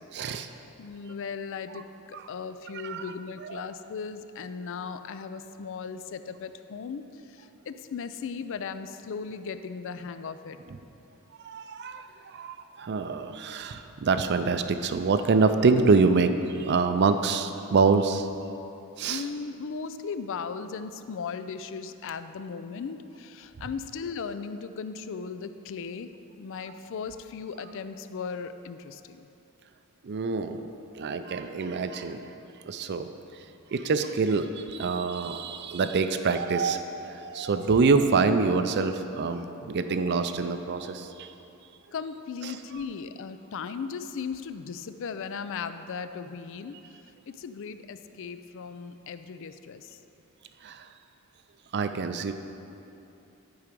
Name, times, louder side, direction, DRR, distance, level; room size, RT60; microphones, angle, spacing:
voice 1, 0.1-0.5 2.8-3.0 3.5-3.6 11.4-18.3 19.0-19.2 30.0-32.2 32.7-33.1 33.7-41.3 50.6-50.9 51.7-52.3, right 4 dB, 50° right, 9 dB, 0.4 m, -26 dB
voice 2, 0.8-10.6 19.1-26.1 26.4-29.3 41.9-50.0, left 5 dB, 60° left, 11 dB, 0.4 m, -37 dB
11.0 x 4.7 x 5.2 m, 2.9 s
head